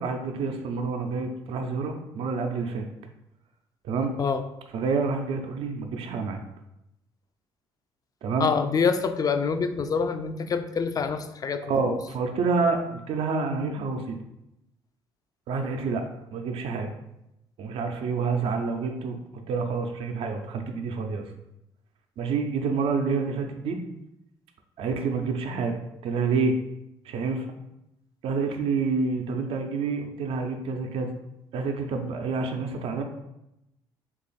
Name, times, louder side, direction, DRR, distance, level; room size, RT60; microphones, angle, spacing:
voice 1, 0.0-2.8 3.8-4.2 4.7-6.4 8.2-8.5 11.7-14.2 15.5-16.0 16.3-16.9 17.6-19.2 19.5-21.2 22.2-23.8 24.8-26.6 27.1-27.5 28.2-31.1 31.5-33.0, right 4 dB, 65° right, 4 dB, 0.4 m, -28 dB
voice 2, 8.4-12.0, left 5 dB, 35° left, 9 dB, 0.4 m, -26 dB
3.0 x 2.4 x 4.0 m, 0.87 s
supercardioid pair, 60°, 10 cm